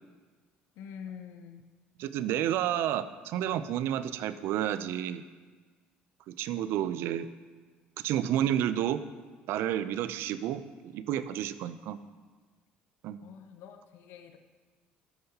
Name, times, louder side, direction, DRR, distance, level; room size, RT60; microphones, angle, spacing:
voice 1, 0.8-1.6 13.2-14.4, left 7 dB, 75° left, 7 dB, 0.6 m, -46 dB
voice 2, 2.0-5.2 6.3-7.3 8.0-9.0 9.5-10.6 10.9-12.0 13.0-13.2, right 11 dB, 75° right, 14 dB, 0.4 m, -30 dB
13.0 x 5.7 x 2.8 m, 1.4 s
supercardioid pair, 85°, 4 cm